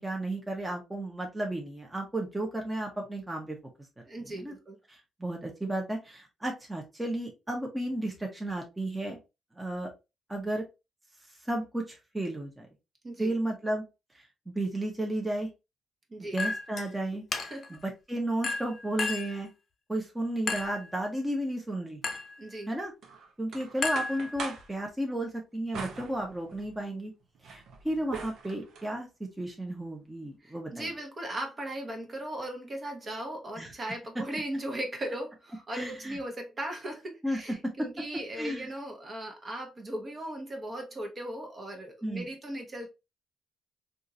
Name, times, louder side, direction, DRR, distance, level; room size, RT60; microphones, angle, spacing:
voice 1, 0.0-3.6 4.3-4.5 4.9-9.2 9.6-9.9 10.3-10.6 11.5-12.7 13.2-13.8 14.5-15.5 16.2-17.2 17.7-19.5 19.9-22.0 22.7-22.9 23.4-27.1 27.5-30.9 33.6-33.7 35.7-36.2 37.2-37.7 38.4-38.7 42.0-42.3, right 1 dB, 10° right, 0.9 m, -33 dB
voice 2, 4.0-4.8 13.0-13.3 16.1-16.4 17.5-17.7 22.4-22.7 30.4-42.9, right 1 dB, 35° right, 1.0 m, -38 dB
Chink clink, 16.4-16.9 17.3-17.8 18.4-19.4 20.5-20.9 22.0-22.4 23.8-24.6, left 3 dB, 50° left, 0.7 m, -33 dB
sound 1, 23.0-24.7 25.7-26.8 27.2-28.9, right 5 dB, 70° right, 0.8 m, -42 dB
3.6 x 2.5 x 2.7 m
cardioid pair, 90°, 0 cm